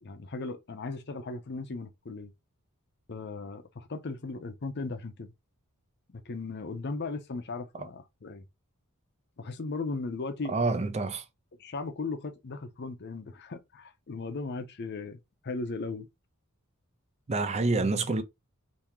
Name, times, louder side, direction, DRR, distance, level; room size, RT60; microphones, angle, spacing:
voice 1, 0.0-2.3 3.1-5.3 6.3-8.4 9.4-10.5 11.6-16.1, left 3 dB, 50° left, 0.6 m, -37 dB
voice 2, 10.5-11.2 17.3-18.2, right 3 dB, 30° right, 0.5 m, -27 dB
3.5 x 2.8 x 2.9 m
head